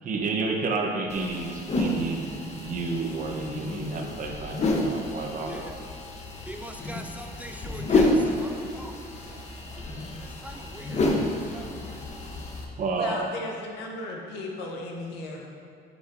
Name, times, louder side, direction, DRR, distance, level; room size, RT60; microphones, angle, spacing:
voice 1, 0.0-5.6 12.8-13.2, right 3 dB, 50° right, 1 dB, 1.0 m, -30 dB
sound 1, 1.1-12.6, left 2 dB, 40° left, 0.9 m, -29 dB
voice 2, 6.5-9.9 10.2-12.4, equal, 10° right, 4 dB, 0.3 m, -43 dB
voice 3, 12.9-15.5, left 2 dB, 85° left, 0 dB, 1.1 m, -36 dB
10.5 x 4.8 x 2.6 m, 2.4 s
cardioid pair, 110°, 17 cm